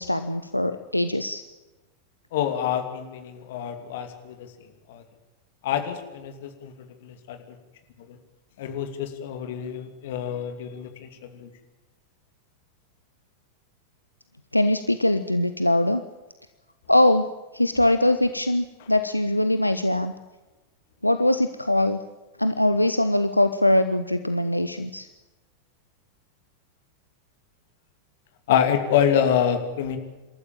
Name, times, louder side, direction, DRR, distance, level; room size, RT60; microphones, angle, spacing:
voice 1, 0.0-1.4 14.5-16.0 16.9-17.3 17.5-20.1 21.0-22.0 22.4-25.1, left 1 dB, 85° left, 10 dB, 0.8 m, -22 dB
voice 2, 2.3-4.5 4.9-5.0 5.6-6.7 7.0-7.6 8.1-8.2 8.6-11.5 28.5-30.0, left 9 dB, 55° left, 7 dB, 2.8 m, -26 dB
27.5 x 13.5 x 8.9 m, 1.1 s
figure-of-eight pair, 90°, 0 cm